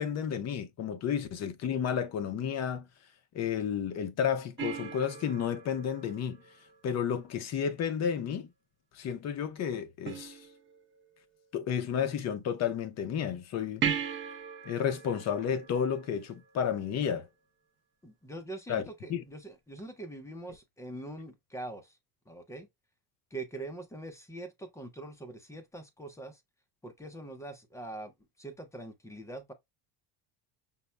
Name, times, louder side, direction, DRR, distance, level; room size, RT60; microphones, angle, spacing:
voice 1, 0.0-2.8 3.3-6.4 6.8-8.5 9.0-10.4 11.5-13.8 14.6-17.3 18.7-18.8 19.1-19.2, left 8 dB, 35° left, 0.7 m, -31 dB
sound 1, 4.6-7.2 10.0-11.0 13.8-16.7 19.8-19.9, right 8 dB, 25° right, 0.7 m, -38 dB
voice 2, 18.0-21.9 22.3-22.7 23.3-26.4 26.8-28.1 28.4-29.5, right 2 dB, 5° left, 0.4 m, -43 dB
5.6 x 2.0 x 3.2 m
cardioid pair, 160°, 46 cm